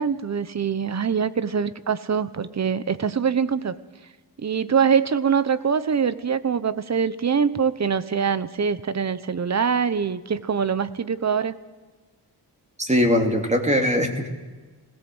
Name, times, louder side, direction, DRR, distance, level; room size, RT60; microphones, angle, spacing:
voice 1, 0.0-3.8 4.4-11.5, right 6 dB, 40° right, 15 dB, 1.0 m, -23 dB
voice 2, 12.8-14.3, equal, 15° right, 4 dB, 2.8 m, -21 dB
20.0 x 18.0 x 8.0 m, 1.3 s
wide cardioid pair, 110°, 41 cm